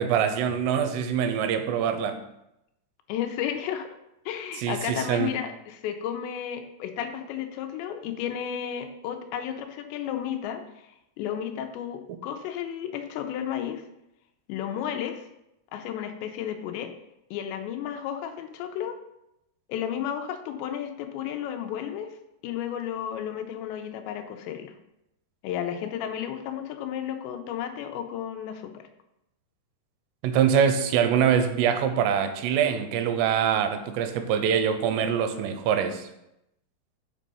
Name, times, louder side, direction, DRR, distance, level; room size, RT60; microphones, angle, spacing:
voice 1, 0.0-2.2 4.6-5.3 30.2-36.0, right 8 dB, 85° right, 8 dB, 2.8 m, -24 dB
voice 2, 3.1-3.9 4.3-10.9 11.2-13.8 14.5-15.2 15.7-16.9 17.3-18.9 19.7-22.2 22.4-24.7 25.4-28.8, left 9 dB, 90° left, 7 dB, 3.0 m, -33 dB
6.5 x 5.3 x 5.3 m, 0.85 s
omnidirectional pair, 5.0 m